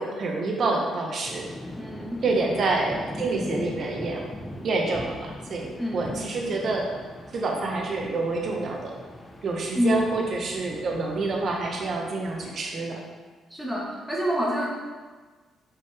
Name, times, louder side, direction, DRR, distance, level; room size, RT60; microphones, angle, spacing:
voice 1, 0.0-1.5 2.2-4.2 4.6-6.9 7.3-9.0 9.4-13.0, right 3 dB, 55° right, 0 dB, 1.3 m, -27 dB
sound 1, 1.2-12.5, left 1 dB, 20° left, 1.0 m, -40 dB
voice 2, 1.8-2.2 5.8-6.1 9.7-10.0 13.5-14.7, equal, ahead, -4 dB, 1.7 m, -27 dB
6.4 x 5.2 x 3.6 m, 1.4 s
cardioid pair, 90°, 0 cm